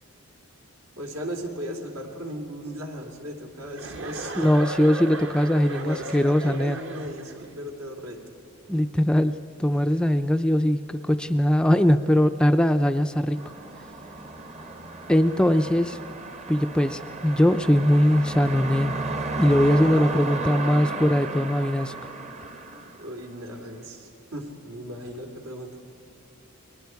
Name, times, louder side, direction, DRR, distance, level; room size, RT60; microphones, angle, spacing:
voice 1, 1.0-4.5 5.7-8.2 23.0-25.8, equal, 80° right, 2 dB, 3.3 m, -37 dB
Chuckle chortle, 3.8-7.5, right 2 dB, 60° right, 1.5 m, -36 dB
voice 2, 4.4-6.8 8.7-9.3 9.6-13.4 15.1-16.0 16.5-18.9 19.4-21.9, equal, 5° left, 8 dB, 0.4 m, -21 dB
sound 1, 13.3-23.6, right 2 dB, 30° right, 0.9 m, -34 dB
30.0 x 22.0 x 4.7 m, 2.9 s
head